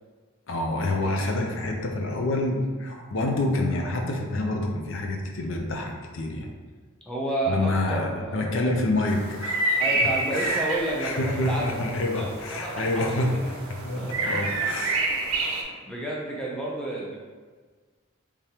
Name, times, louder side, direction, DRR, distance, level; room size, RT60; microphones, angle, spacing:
voice 1, 0.5-6.5 7.5-9.7 10.3-10.7 11.0-15.0, left 2 dB, 65° left, 1 dB, 0.5 m, -27 dB
voice 2, 7.1-8.5 9.8-11.7 12.1-13.4 14.0-14.5 14.9-15.0 15.5-17.2, right 2 dB, 5° left, -4 dB, 0.5 m, -31 dB
sound 1, 9.1-15.6, right 2 dB, 80° right, 0.6 m, -29 dB
3.5 x 3.4 x 2.8 m, 1.5 s
head